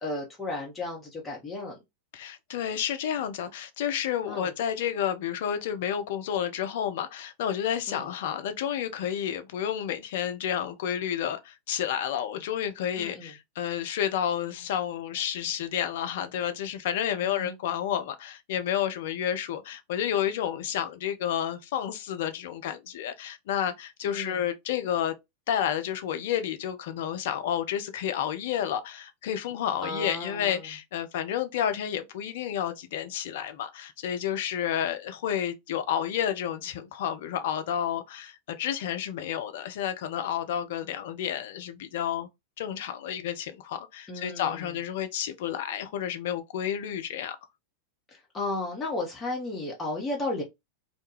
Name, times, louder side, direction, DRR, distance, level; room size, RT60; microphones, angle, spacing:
voice 1, 0.0-1.8 4.3-4.5 7.9-8.1 13.0-13.3 17.2-17.5 24.0-24.4 29.8-30.7 44.1-44.7 48.1-50.4, left 2 dB, 15° left, 0.7 m, -34 dB
voice 2, 2.1-25.2 25.5-42.3 42.6-47.4, left 9 dB, 55° left, 0.4 m, -30 dB
2.3 x 2.2 x 2.9 m
figure-of-eight pair, 90°, 0 cm